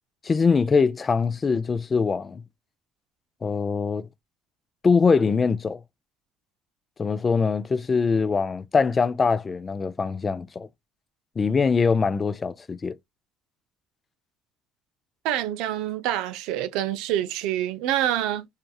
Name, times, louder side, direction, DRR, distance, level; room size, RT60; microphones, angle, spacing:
voice 1, 0.2-2.4 3.4-4.1 4.8-5.8 7.0-10.7 11.4-12.9, left 5 dB, 30° left, 0.3 m, -23 dB
voice 2, 15.2-18.5, right 12 dB, 90° right, 0.3 m, -26 dB
2.8 x 2.4 x 2.2 m
cardioid pair, 90°, 0 cm